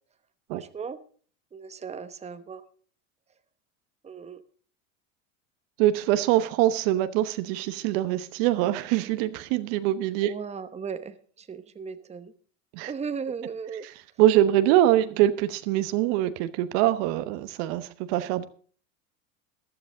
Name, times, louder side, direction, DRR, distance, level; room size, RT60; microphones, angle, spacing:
voice 1, 0.5-1.0 1.5-2.6 4.0-4.4 10.2-12.3 12.9-13.9, right 6 dB, 15° right, 1.0 m, -36 dB
voice 2, 5.8-10.3 12.7-12.9 14.2-18.4, right 13 dB, 65° right, 1.1 m, -23 dB
14.0 x 12.0 x 3.8 m
hypercardioid pair, 95°, 40 cm